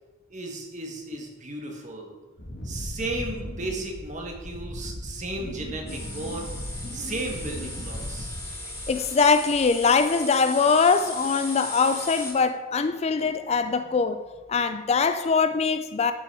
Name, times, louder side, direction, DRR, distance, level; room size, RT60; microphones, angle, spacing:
voice 1, 0.3-2.1 2.6-6.5 6.9-8.3, right 2 dB, 35° right, 1 dB, 1.6 m, -35 dB
Wind, 2.4-9.2 9.5-10.0, equal, 55° left, 1.7 m, -37 dB
sound 1, 5.9-12.3, left 1 dB, 15° left, 2.0 m, -37 dB
voice 2, 8.9-14.2 14.5-16.1, left 5 dB, 30° left, 10 dB, 0.3 m, -22 dB
12.0 x 5.7 x 4.8 m, 1.3 s
head